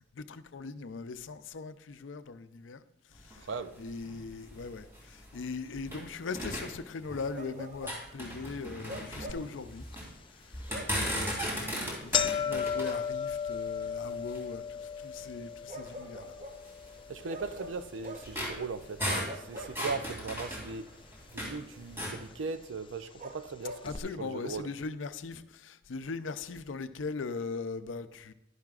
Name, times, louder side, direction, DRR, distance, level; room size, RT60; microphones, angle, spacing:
voice 1, 0.0-3.5 3.8-9.9 10.3-10.6 11.5-16.4 23.8-28.3, left 4 dB, 85° left, 0.5 m, -40 dB
sound 1, 3.1-6.1 6.4-7.4 7.7-10.1 10.5-14.5 15.2-15.3 15.7-15.9 16.6-21.6 21.9-22.2, equal, 15° right, 2.7 m, -37 dB
voice 2, 3.4-3.8 17.1-21.0 21.3-23.9 24.2-24.7, right 4 dB, 85° right, 0.5 m, -38 dB
Bark, 7.3-8.1 8.8-9.5 10.7-11.1 12.7-12.9 15.7-16.6 17.3-18.4 19.2-20.5 23.2-23.9, right 1 dB, 40° right, 0.6 m, -45 dB
sound 2, 9.3-9.4 9.9-10.0 10.9-11.1 11.4-11.5 11.7-20.0 20.2-21.0 21.8-21.9 22.8-22.9 23.2-23.3 23.8-24.0, left 7 dB, 25° left, 0.3 m, -36 dB
11.5 x 10.5 x 2.4 m
head